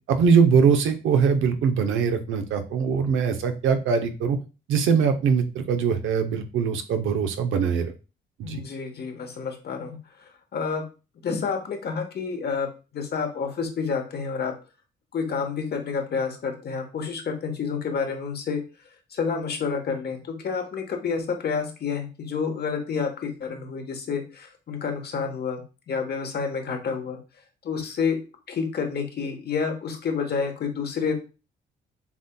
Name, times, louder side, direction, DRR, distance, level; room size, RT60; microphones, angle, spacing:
voice 1, 0.1-4.4 4.7-7.9 8.4-8.6, right 6 dB, 80° right, 7 dB, 0.7 m, -22 dB
voice 2, 8.4-10.0 10.5-10.9 11.2-12.7 12.9-14.5 15.1-18.6 19.1-27.2 27.6-28.2 28.5-31.1, left 5 dB, 55° left, 4 dB, 1.1 m, -29 dB
7.1 x 2.6 x 2.2 m, 0.32 s
cardioid pair, 90°, 20 cm